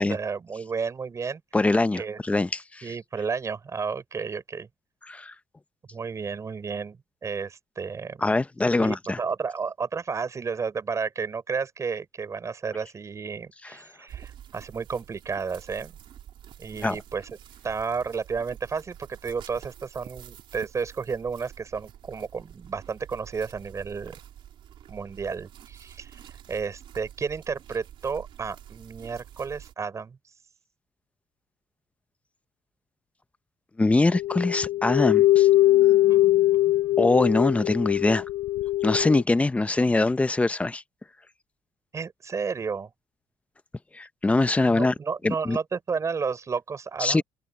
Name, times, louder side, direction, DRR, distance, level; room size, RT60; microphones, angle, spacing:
voice 1, 0.0-1.4 1.9-2.2 2.8-4.7 5.9-8.2 8.8-15.9 16.6-17.3 17.6-24.2 24.9-30.2 36.1-36.7 41.9-42.9 44.7-47.2, right 5 dB, 35° right, 6.2 m, -32 dB
voice 2, 1.5-2.9 5.1-5.3 8.2-9.2 16.8-17.0 33.8-35.5 37.0-38.2 38.8-40.8 43.9-44.9 45.2-45.6 47.0-47.2, left 2 dB, 15° left, 0.8 m, -23 dB
sound 1, 14.1-29.7, right 10 dB, 65° right, 4.0 m, -47 dB
sound 2, 34.1-39.2, left 15 dB, 85° left, 0.5 m, -21 dB
open air
cardioid pair, 110°, 10 cm